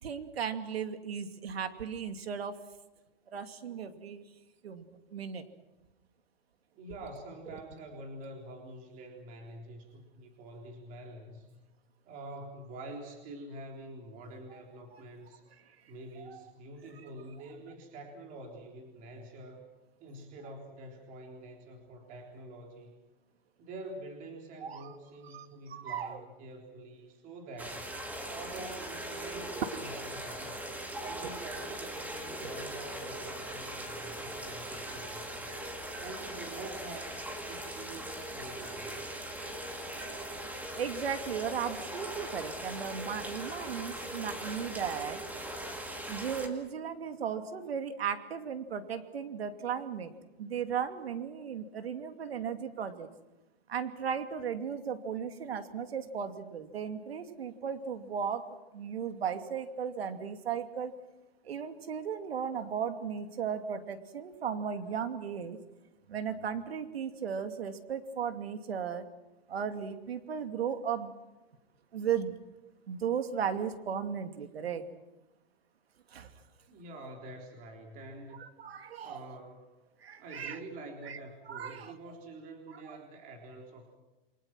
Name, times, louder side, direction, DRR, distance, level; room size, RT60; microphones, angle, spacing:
voice 1, 0.0-2.6 3.3-4.2 4.6-5.4 14.9-15.0 16.2-16.4 24.6-24.9 25.3-26.2 35.9-36.0 40.7-45.2 46.1-50.1 50.4-53.1 53.7-58.5 58.7-60.9 61.4-65.6 66.1-69.0 69.5-71.1 71.9-72.3 72.9-74.8 76.1-76.3 78.4-79.4 80.0-80.6 81.0-81.2 81.5-81.9 82.7-83.0, right 7 dB, 80° right, 8 dB, 2.7 m, -36 dB
voice 2, 6.7-11.5 12.0-15.4 15.9-19.7 20.0-23.0 23.6-27.9 28.3-30.6 31.0-35.5 36.0-37.2 37.5-39.1 76.7-78.5 79.0-79.7 80.2-84.0, right 2 dB, 25° right, 2 dB, 3.8 m, -46 dB
sound 1, 27.6-46.5, right 1 dB, 5° right, 2.2 m, -40 dB
28.5 x 24.5 x 6.1 m, 1.0 s
hypercardioid pair, 155°, 30 cm